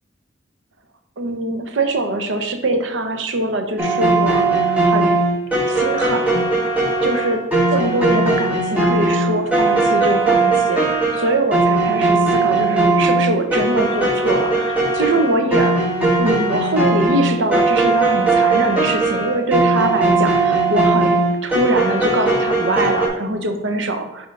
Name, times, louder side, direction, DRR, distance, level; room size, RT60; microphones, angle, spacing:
voice 1, 1.2-5.2 5.7-6.5 7.0-7.4 7.7-15.8 16.2-24.3, right 2 dB, 75° right, 6 dB, 0.7 m, -23 dB
sound 1, 3.8-23.1, right 2 dB, 10° right, 1.1 m, -18 dB
4.4 x 4.1 x 5.3 m, 0.88 s
head